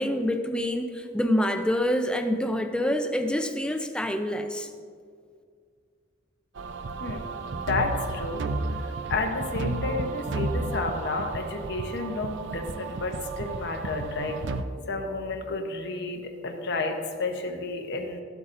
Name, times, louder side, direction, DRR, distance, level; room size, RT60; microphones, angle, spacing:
voice 1, 0.0-4.7, equal, 5° left, 6 dB, 0.5 m, -26 dB
sound 1, 6.6-14.6, right 3 dB, 65° right, 0.5 m, -32 dB
voice 2, 7.5-8.8 9.1-14.4 14.9-18.2, left 3 dB, 60° left, 3 dB, 0.9 m, -31 dB
14.0 x 8.1 x 2.6 m, 2.1 s
head